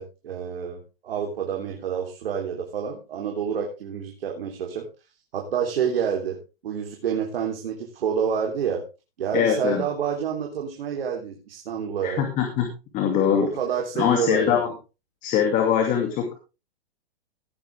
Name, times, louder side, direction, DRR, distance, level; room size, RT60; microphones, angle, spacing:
voice 1, 0.0-4.9 5.3-6.4 6.6-8.8 9.2-12.2 13.4-14.7, right 7 dB, 70° right, 1 dB, 3.5 m, -28 dB
voice 2, 9.3-9.8 12.0-13.5 14.0-14.7 15.2-16.3, left 8 dB, 25° left, 4 dB, 2.5 m, -22 dB
17.5 x 9.5 x 3.5 m, 0.30 s
hypercardioid pair, 150°, 29 cm